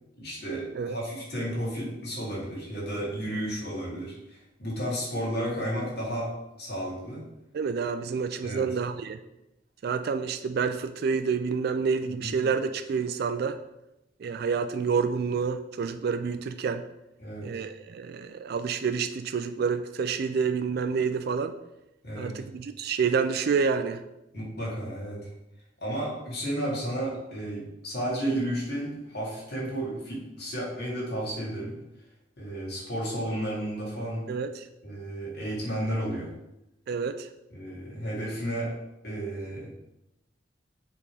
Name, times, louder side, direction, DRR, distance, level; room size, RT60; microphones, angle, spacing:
voice 1, 0.2-7.2 8.4-8.7 12.0-12.4 17.2-17.6 22.0-22.4 24.3-25.3 25.8-31.8 32.4-34.3 34.8-36.3 37.5-38.8 39.0-39.7, right 1 dB, 60° left, -5 dB, 2.4 m, -33 dB
voice 2, 7.5-9.2 9.8-13.6 14.2-16.9 17.4-21.5 22.2-24.0 34.3-34.7 36.9-37.3, right 5 dB, 60° right, 9 dB, 0.4 m, -28 dB
6.8 x 3.6 x 4.8 m, 0.91 s
head